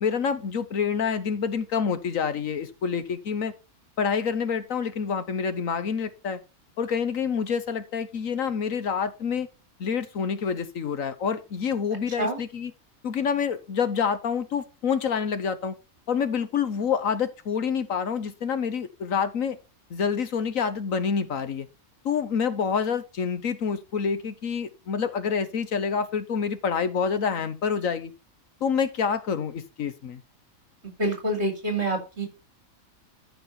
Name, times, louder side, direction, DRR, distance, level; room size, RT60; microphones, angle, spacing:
voice 1, 0.0-3.5 4.0-6.4 6.8-9.5 9.8-12.7 13.0-15.7 16.1-19.6 19.9-21.7 22.0-28.1 28.6-30.2, left 6 dB, 65° left, 12 dB, 1.4 m, -27 dB
voice 2, 30.8-32.3, right 1 dB, 45° right, 5 dB, 4.4 m, -27 dB
12.5 x 6.1 x 4.3 m, 0.29 s
omnidirectional pair, 1.5 m